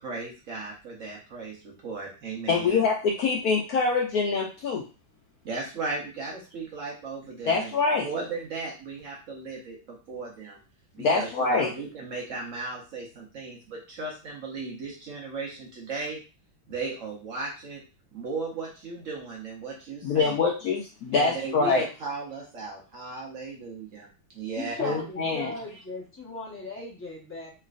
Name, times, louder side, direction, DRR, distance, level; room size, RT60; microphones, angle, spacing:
voice 1, 0.0-2.8 5.4-7.7 8.0-10.6 10.9-16.2 16.7-17.8 18.1-20.4 21.1-24.1 24.3-25.0, right 3 dB, 70° right, -2 dB, 0.7 m, -36 dB
voice 2, 2.5-4.9 7.5-8.1 11.0-11.7 20.0-21.8 24.8-25.5, left 4 dB, 80° left, -1 dB, 0.8 m, -25 dB
voice 3, 24.6-27.5, left 2 dB, 10° left, -6 dB, 0.7 m, -37 dB
3.1 x 3.0 x 2.4 m, 0.33 s
omnidirectional pair, 2.2 m